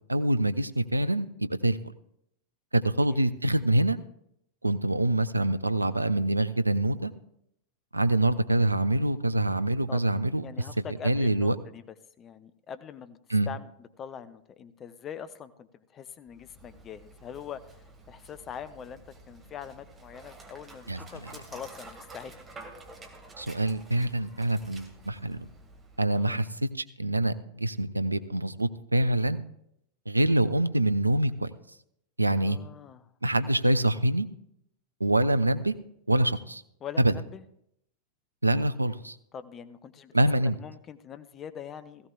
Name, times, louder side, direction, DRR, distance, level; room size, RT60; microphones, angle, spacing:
voice 1, 0.1-1.8 2.7-4.0 4.6-7.1 7.9-10.4 11.0-11.5 13.3-13.5 20.9-21.0 23.4-25.5 26.0-26.7 27.0-29.4 30.1-31.5 32.2-32.6 33.2-34.3 35.0-35.7 36.1-36.6 37.0-37.1 38.4-39.2 40.1-40.6, right 1 dB, 85° right, 13 dB, 0.5 m, -25 dB
voice 2, 10.4-11.8 12.2-13.2 13.5-13.7 14.0-17.6 18.1-19.0 19.3-22.4 26.1-26.5 32.4-33.1 36.8-37.4 39.3-40.1 40.4-42.1, left 8 dB, 25° left, 13 dB, 0.7 m, -43 dB
Dog, 16.3-26.2, right 2 dB, 20° right, 2.1 m, -50 dB
17.0 x 15.5 x 2.4 m, 0.76 s
figure-of-eight pair, 90°, 0 cm